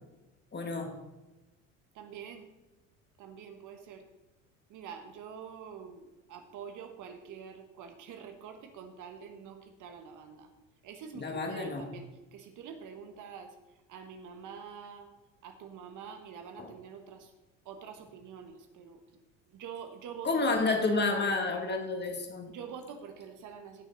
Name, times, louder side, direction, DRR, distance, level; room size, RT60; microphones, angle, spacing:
voice 1, 0.5-1.0 11.1-11.9 16.6-16.7 20.2-22.5, left 3 dB, 25° left, 3 dB, 2.1 m, -30 dB
voice 2, 1.9-2.5 3.2-4.0 4.7-10.5 10.8-13.5 13.9-15.1 15.4-17.3 17.6-20.4 22.5-23.9, right 7 dB, 50° right, 6 dB, 1.4 m, -46 dB
16.5 x 6.4 x 4.1 m, 1.0 s
hypercardioid pair, 70°, 39 cm